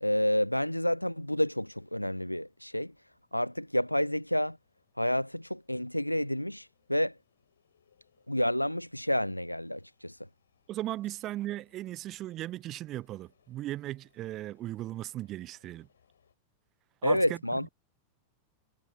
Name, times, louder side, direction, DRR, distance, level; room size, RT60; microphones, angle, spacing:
voice 1, 0.0-2.9 3.3-4.6 5.0-7.2 8.3-10.2 17.0-17.7, left 1 dB, 90° left, 0.5 m, -29 dB
sound 1, 1.7-16.3, left 7 dB, 70° left, 7.2 m, -72 dB
voice 2, 10.7-15.9 17.0-17.4, right 14 dB, 35° right, 0.7 m, -37 dB
figure-of-eight pair, 90°, 0 cm